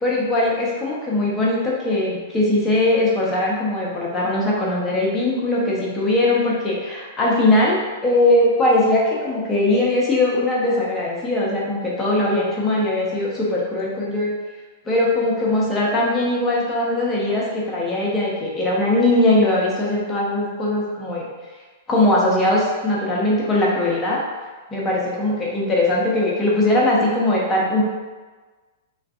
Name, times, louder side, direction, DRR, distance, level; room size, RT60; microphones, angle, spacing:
voice 1, 0.0-14.3 14.9-21.3 21.9-24.2 24.7-27.8, left 1 dB, 20° left, -5 dB, 0.7 m, -20 dB
2.5 x 2.4 x 2.4 m, 1.3 s
hypercardioid pair, 105°, 0 cm